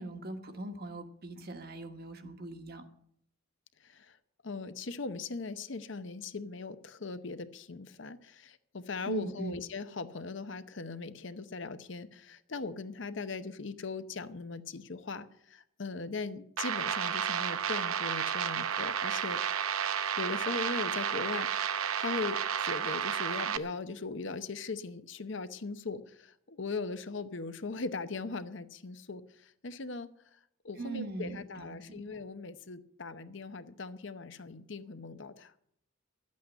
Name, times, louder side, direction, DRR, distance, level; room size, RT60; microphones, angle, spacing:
voice 1, 0.0-2.8 9.0-9.6 30.8-32.0, right 2 dB, 45° right, 6 dB, 1.5 m, -41 dB
voice 2, 3.8-4.2 4.4-19.4 20.2-30.1 30.6-35.5, left 4 dB, 60° left, 11 dB, 0.8 m, -39 dB
sound 1, 16.6-23.6, right 8 dB, 85° right, 0.8 m, -32 dB
12.0 x 8.5 x 9.5 m, 0.71 s
head